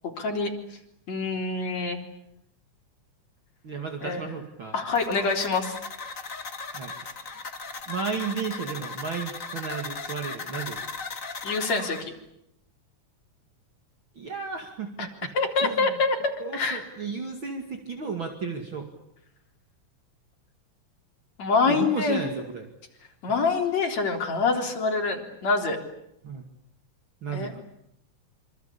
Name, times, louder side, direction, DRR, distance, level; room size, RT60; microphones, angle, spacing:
voice 1, 0.2-0.5 1.1-2.0 4.0-4.2 4.7-5.7 11.4-12.1 15.0-15.1 15.3-16.2 16.5-16.8 21.4-22.2 23.2-25.8 27.3-27.5, left 4 dB, 65° left, 2 dB, 5.0 m, -25 dB
voice 2, 3.6-4.7 6.7-7.0 7.9-10.8 14.2-15.3 15.6-16.0 16.4-18.9 21.7-22.7 23.3-23.4 26.2-26.5 27.2-27.6, right 5 dB, 45° right, 4 dB, 2.9 m, -33 dB
sound 1, 5.0-12.0, left 4 dB, 30° left, 1.9 m, -37 dB
26.5 x 26.5 x 8.5 m, 0.79 s
omnidirectional pair, 3.3 m